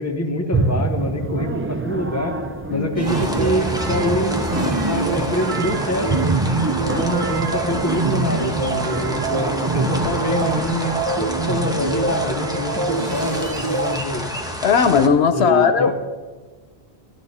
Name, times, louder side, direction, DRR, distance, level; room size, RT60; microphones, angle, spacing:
voice 1, 0.0-2.4 2.7-4.3 4.9-6.2 6.9-11.0 11.4-14.3 15.3-15.9, equal, 15° left, 2 dB, 1.1 m, -25 dB
sound 1, 0.5-10.6, right 3 dB, 20° right, 0.3 m, -28 dB
sound 2, 3.0-14.0, right 3 dB, 35° right, 0.8 m, -25 dB
sound 3, 3.1-15.1, equal, 5° right, 0.9 m, -29 dB
voice 2, 14.6-15.9, left 6 dB, 80° left, 9 dB, 0.9 m, -17 dB
12.5 x 11.5 x 4.2 m, 1.4 s
omnidirectional pair, 1.1 m